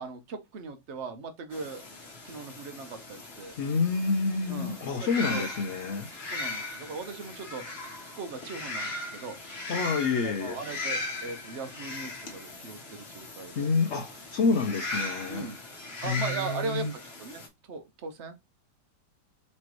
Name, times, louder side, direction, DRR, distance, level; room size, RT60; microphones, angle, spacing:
voice 1, 0.0-1.8 2.2-3.6 4.5-5.5 6.3-7.6 8.2-9.6 10.2-13.7 15.3-15.6 16.0-16.9 17.2-18.4, right 4 dB, 55° right, 0.9 m, -39 dB
sound 1, 1.5-17.5, left 2 dB, 40° left, 1.3 m, -38 dB
voice 2, 3.6-6.1 9.7-10.6 13.6-15.5 16.0-16.9, left 4 dB, 80° left, 0.6 m, -28 dB
4.3 x 3.1 x 3.0 m
omnidirectional pair, 1.9 m